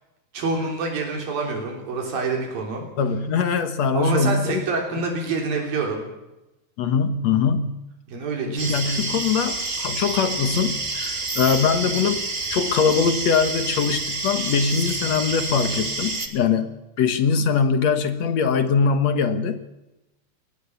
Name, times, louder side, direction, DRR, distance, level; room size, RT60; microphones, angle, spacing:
voice 1, 0.3-2.8 3.9-6.1 8.1-8.7, right 3 dB, 85° right, 1 dB, 5.3 m, -26 dB
voice 2, 3.0-4.6 6.8-7.8 8.5-12.2 12.5-16.7 17.0-19.6, left 6 dB, 60° left, 10 dB, 2.2 m, -22 dB
sound 1, 8.6-16.3, right 3 dB, 20° right, 1.8 m, -28 dB
23.0 x 18.5 x 7.0 m, 0.96 s
omnidirectional pair, 4.0 m